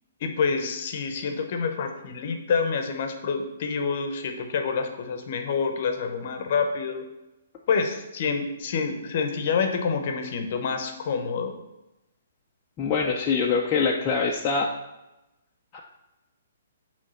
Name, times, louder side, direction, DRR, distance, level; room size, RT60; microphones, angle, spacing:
voice 1, 0.2-7.0 7.7-11.5, left 5 dB, 40° left, 6 dB, 0.8 m, -27 dB
voice 2, 12.8-14.7 15.7-15.8, left 5 dB, 15° left, -2 dB, 0.4 m, -24 dB
7.1 x 3.2 x 5.5 m, 0.97 s
hypercardioid pair, 175°, 0 cm